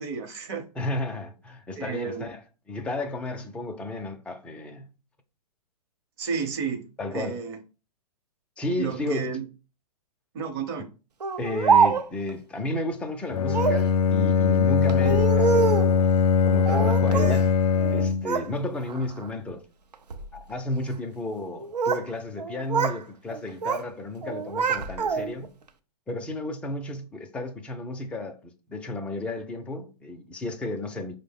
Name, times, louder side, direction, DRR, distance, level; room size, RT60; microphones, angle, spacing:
voice 1, 0.0-0.6 1.7-2.3 6.2-6.9 7.1-7.6 8.8-9.4 10.3-10.9, right 6 dB, 40° right, 0.8 m, -31 dB
voice 2, 0.8-2.4 2.7-4.9 7.0-7.4 8.6-9.4 11.4-16.2 16.4-17.5 17.9-19.6 20.3-25.5 26.1-31.2, left 2 dB, 5° left, 0.4 m, -33 dB
Speech, 11.2-12.3 13.5-13.9 14.9-15.9 16.6-17.4 17.8-18.5 18.9-19.3 19.9-20.3 21.4-22.1 22.4-23.0 23.3-23.9 24.2-25.5, right 5 dB, 85° right, 0.5 m, -25 dB
Bowed string instrument, 13.3-18.4, left 6 dB, 70° left, 0.4 m, -21 dB
5.0 x 2.1 x 3.5 m
hypercardioid pair, 120°, 20 cm